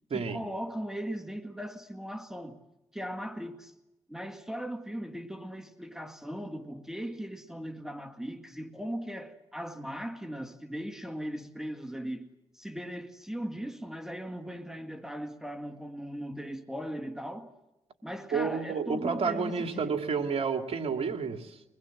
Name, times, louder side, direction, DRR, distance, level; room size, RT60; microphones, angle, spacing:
voice 1, 0.1-2.6 2.9-3.7 4.1-12.3 12.5-17.5 18.0-20.0, equal, 5° right, 2.0 m, -38 dB
voice 2, 18.3-21.6, right 5 dB, 60° right, 2.7 m, -30 dB
24.0 x 21.5 x 7.5 m
supercardioid pair, 55°, 11 cm